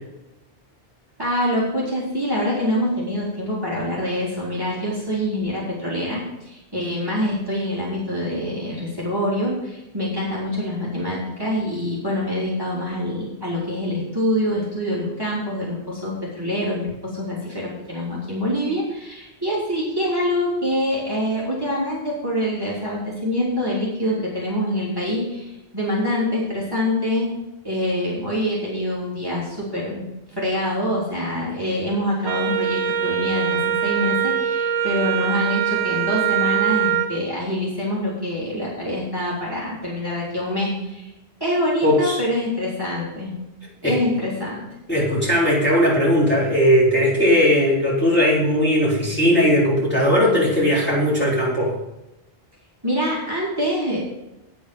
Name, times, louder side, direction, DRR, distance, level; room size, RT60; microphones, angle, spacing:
voice 1, 1.2-27.3 27.6-30.1 30.4-41.1 41.4-43.3 43.8-44.7 52.8-54.0, left 1 dB, 20° right, -7 dB, 3.3 m, -25 dB
Wind instrument woodwind instrument, 32.2-37.1, right 9 dB, 85° right, 1.3 m, -23 dB
voice 2, 41.8-42.2 43.8-44.0 44.9-51.8, equal, 10° left, -7 dB, 4.1 m, -18 dB
9.9 x 8.5 x 5.2 m, 0.92 s
omnidirectional pair, 1.1 m